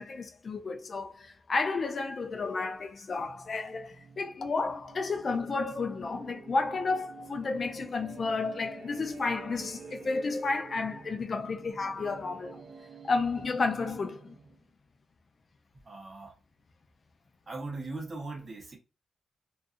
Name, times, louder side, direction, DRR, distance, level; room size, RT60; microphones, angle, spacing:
voice 1, 0.0-12.6 13.0-14.4, left 3 dB, 40° left, 0.3 m, -32 dB
sound 1, 3.3-14.6, right 5 dB, 50° right, 0.3 m, -49 dB
voice 2, 15.8-16.3 17.5-18.8, right 3 dB, 35° right, 0.8 m, -39 dB
2.4 x 2.4 x 2.5 m
wide cardioid pair, 125°, 0 cm